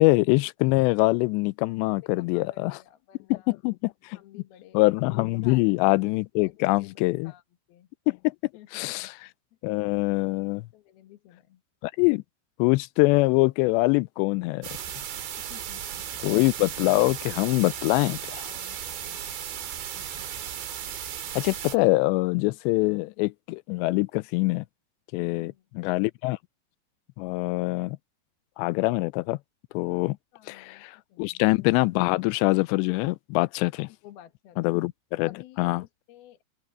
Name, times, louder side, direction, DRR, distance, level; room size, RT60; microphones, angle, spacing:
voice 1, 0.0-2.8 3.3-4.4 4.7-7.3 8.1-8.2 8.7-9.3 9.6-10.7 11.8-12.2 12.6-14.7 16.2-18.5 21.4-24.7 25.1-26.4 27.2-28.0 28.6-29.4 29.7-30.2 30.5-33.9 34.6-35.3 35.6-35.8, left 23 dB, 85° left, 2.8 m, -24 dB
voice 2, 2.0-3.5 4.1-4.8 5.4-5.8 6.4-7.4 7.7-7.9 8.5-9.1 10.7-11.6 15.5-16.3 18.4-19.2 19.9-20.4 25.2-25.6 30.3-31.4 34.0-34.8 35.2-36.4, left 12 dB, 65° left, 3.2 m, -52 dB
sound 1, 14.6-21.8, right 9 dB, 80° right, 4.7 m, -36 dB
open air
omnidirectional pair, 5.0 m